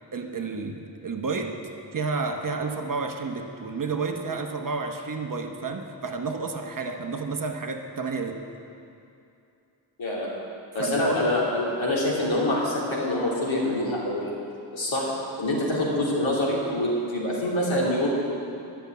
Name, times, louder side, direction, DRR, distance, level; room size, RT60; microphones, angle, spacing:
voice 1, 0.1-1.6 1.9-8.4 10.8-11.2, right 4 dB, 45° right, 4 dB, 1.0 m, -30 dB
voice 2, 10.0-10.3 10.7-14.3 14.7-15.1 15.4-18.1, left 1 dB, 80° left, -5 dB, 3.2 m, -25 dB
11.5 x 7.0 x 9.4 m, 2.6 s
wide cardioid pair, 145°, 45 cm